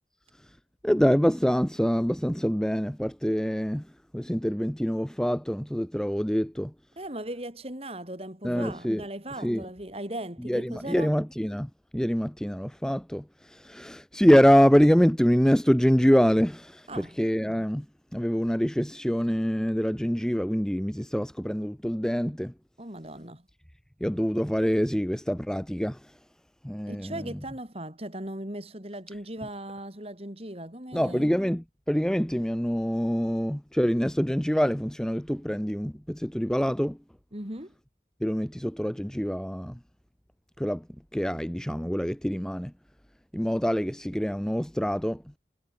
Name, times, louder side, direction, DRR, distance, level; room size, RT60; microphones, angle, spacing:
voice 1, 0.8-6.7 8.4-9.1 9.4-9.7 10.4-22.5 24.0-26.2 26.6-27.4 30.9-37.0 38.2-39.8 40.6-40.9 41.1-42.7 43.3-45.3, equal, 5° left, 0.6 m, -25 dB
voice 2, 7.0-11.1 16.9-17.1 22.8-23.4 26.9-31.3 37.3-37.7, right 1 dB, 35° right, 4.1 m, -38 dB
head